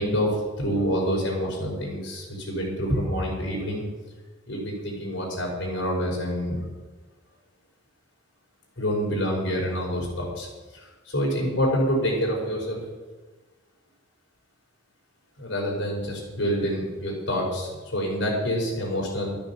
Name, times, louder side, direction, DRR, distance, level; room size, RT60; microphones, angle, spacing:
voice 1, 0.0-3.8 4.5-6.6 8.8-10.5 10.7-12.8 15.4-19.4, equal, 70° left, -2 dB, 5.4 m, -27 dB
14.0 x 8.9 x 7.2 m, 1.3 s
head